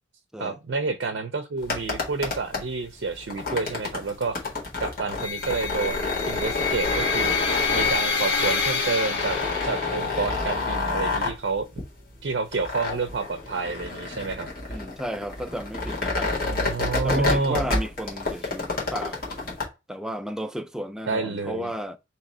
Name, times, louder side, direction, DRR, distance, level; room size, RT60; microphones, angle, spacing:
voice 1, 0.4-4.5 4.8-9.4 9.6-11.7 12.2-14.8 16.5-17.7 21.1-21.7, right 4 dB, 65° right, 0.6 m, -29 dB
sound 1, 1.6-19.7, left 3 dB, 50° left, 1.5 m, -29 dB
sound 2, 5.2-10.2, left 4 dB, 75° left, 1.5 m, -27 dB
voice 2, 14.7-16.3 17.0-19.2 19.9-22.0, right 1 dB, 5° right, 0.3 m, -33 dB
3.7 x 3.0 x 4.2 m
head